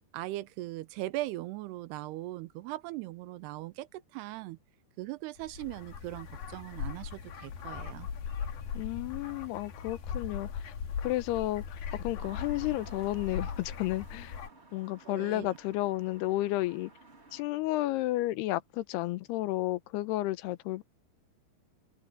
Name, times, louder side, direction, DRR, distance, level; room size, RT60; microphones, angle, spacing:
voice 1, 0.1-4.6 5.0-8.1 15.1-15.5, right 17 dB, 85° right, 2.9 m, -39 dB
sound 1, 5.4-14.5, left 7 dB, 65° left, 4.2 m, -39 dB
voice 2, 8.7-10.7 11.0-14.4 14.7-16.9 17.3-20.8, left 17 dB, 85° left, 2.9 m, -32 dB
sound 2, 12.2-17.4, right 3 dB, 20° right, 2.2 m, -54 dB
omnidirectional pair, 4.6 m